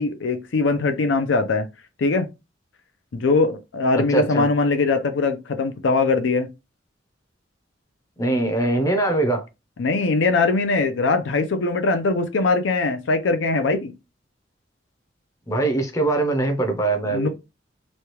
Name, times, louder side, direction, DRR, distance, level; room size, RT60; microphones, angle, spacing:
voice 1, 0.0-1.7 2.0-2.3 3.1-6.5 9.8-13.9 17.1-17.3, left 3 dB, 80° left, 0.5 m, -21 dB
voice 2, 4.0-4.5 8.2-9.4 15.5-17.3, right 2 dB, 15° left, 0.6 m, -22 dB
3.1 x 2.3 x 2.9 m
head